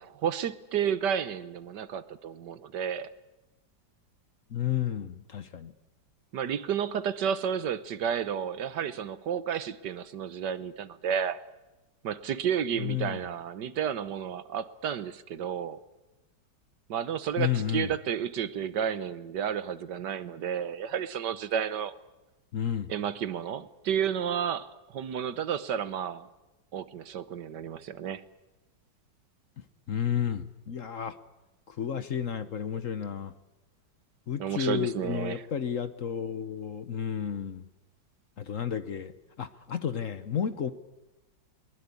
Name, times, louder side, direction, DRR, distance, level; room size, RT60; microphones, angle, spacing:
voice 1, 0.0-3.1 6.3-11.4 12.0-15.8 16.9-21.9 22.9-26.3 26.7-28.2 34.4-35.4, right 8 dB, 70° right, 14 dB, 1.6 m, -31 dB
voice 2, 4.5-5.7 12.8-13.2 17.4-17.9 22.5-22.9 29.9-31.2 31.7-33.3 34.3-37.7 38.4-39.1 39.4-40.7, left 8 dB, 50° left, 12 dB, 1.2 m, -31 dB
22.5 x 20.5 x 8.4 m, 1.1 s
omnidirectional pair, 2.0 m